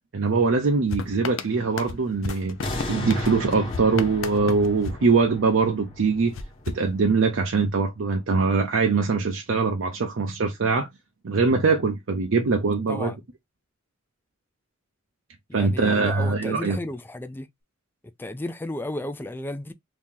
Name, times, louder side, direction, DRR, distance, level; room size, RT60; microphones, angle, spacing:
voice 1, 0.1-2.6 2.9-6.3 6.7-10.9 11.2-13.1 15.5-16.8, right 4 dB, 75° right, 0.6 m, -22 dB
sound 1, 0.9-5.8 6.3-7.6, left 5 dB, 80° left, 0.5 m, -36 dB
sound 2, 2.6-7.7 8.2-8.3, left 1 dB, 25° left, 1.1 m, -34 dB
voice 2, 15.5-17.5 18.2-19.7, left 1 dB, 10° left, 0.3 m, -33 dB
2.8 x 2.7 x 3.6 m
head